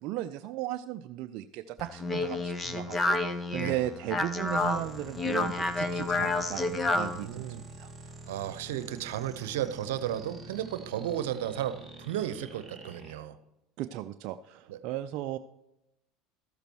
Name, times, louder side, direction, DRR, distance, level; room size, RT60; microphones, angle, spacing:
voice 1, 0.0-7.5 7.7-7.9 13.8-15.4, right 13 dB, 60° right, 8 dB, 0.4 m, -36 dB
Speech, 1.8-7.2, left 2 dB, 20° left, 0.9 m, -30 dB
voice 2, 3.5-3.9 7.1-7.7 8.3-13.4 14.7-14.8, right 11 dB, 85° right, 12 dB, 0.8 m, -34 dB
sound 1, 4.5-13.1, right 2 dB, 10° right, 2.3 m, -47 dB
14.0 x 6.8 x 4.6 m, 0.90 s
supercardioid pair, 100°, 0 cm